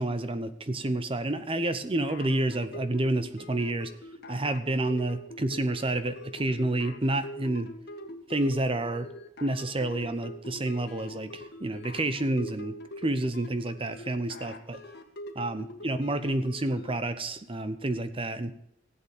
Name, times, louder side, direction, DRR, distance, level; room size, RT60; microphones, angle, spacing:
voice 1, 0.0-3.9 4.3-7.7 8.3-9.1 9.4-14.8 15.3-18.5, right 2 dB, 30° right, 11 dB, 0.8 m, -29 dB
sound 1, 2.0-17.0, left 1 dB, 60° left, 1.9 m, -44 dB
15.5 x 8.4 x 7.2 m, 0.74 s
head